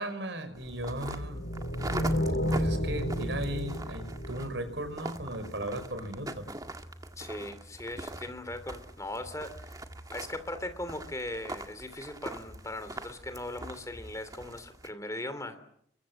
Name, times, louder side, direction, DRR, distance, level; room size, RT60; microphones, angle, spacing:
voice 1, 0.0-1.5 2.5-6.5, right 1 dB, 70° right, 10 dB, 5.3 m, -36 dB
sound 1, 0.5-14.9, right 2 dB, 20° right, 1.8 m, -43 dB
sound 2, 0.9-5.3, equal, 75° left, 7.0 m, -31 dB
voice 2, 7.2-9.8 10.1-15.6, left 1 dB, 15° left, 10 dB, 3.0 m, -39 dB
29.0 x 23.5 x 7.7 m, 0.70 s
head